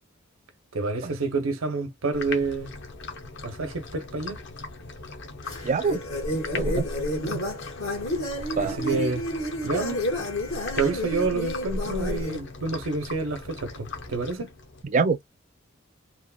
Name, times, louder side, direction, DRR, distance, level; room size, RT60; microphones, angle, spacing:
voice 1, 0.7-2.7 3.4-4.4 8.6-9.2 9.6-10.0 10.8-14.5, right 3 dB, 85° right, 0.8 m, -28 dB
sound 1, 2.1-14.8, left 4 dB, 60° left, 0.7 m, -40 dB
sound 2, 5.4-12.4, left 1 dB, 80° left, 1.2 m, -30 dB
voice 2, 5.6-6.0 6.5-6.9 7.2-7.4 8.6-9.0 14.8-15.2, right 4 dB, 35° right, 0.4 m, -25 dB
3.0 x 2.1 x 2.2 m
head